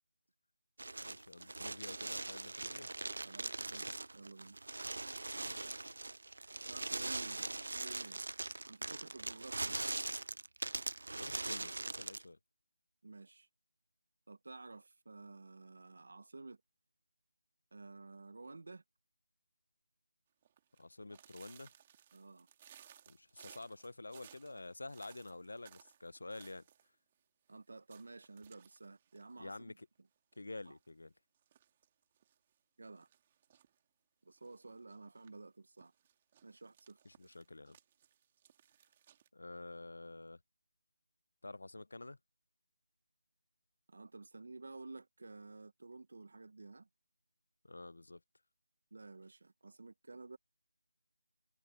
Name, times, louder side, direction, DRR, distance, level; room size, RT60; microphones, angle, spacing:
sound 1, 0.8-12.2, right 2 dB, 70° right, 0.7 m, -41 dB
voice 1, 1.0-2.9 5.4-5.6 11.2-12.4 20.8-21.7 23.1-26.7 29.4-29.9 30.4-31.1 37.0-37.8 39.3-40.4 41.4-42.2 47.6-48.2, left 2 dB, 75° left, 1.0 m, -49 dB
voice 2, 3.2-4.6 6.7-7.4 7.7-8.2 8.7-9.8 13.0-13.5 14.3-16.6 17.7-18.8 22.1-22.5 27.5-29.8 30.7-30.8 32.8-33.1 34.2-35.9 36.4-37.3 43.9-46.9 48.9-50.4, right 3 dB, 55° right, 1.3 m, -52 dB
sound 2, 20.4-26.9 27.1-27.2 27.5-27.6 27.9-30.0 30.3-30.9 31.3-32.4 33.0-33.8 34.4-35.3 35.8-39.3, right 10 dB, 20° right, 2.2 m, -63 dB
figure-of-eight pair, 175°, 0 cm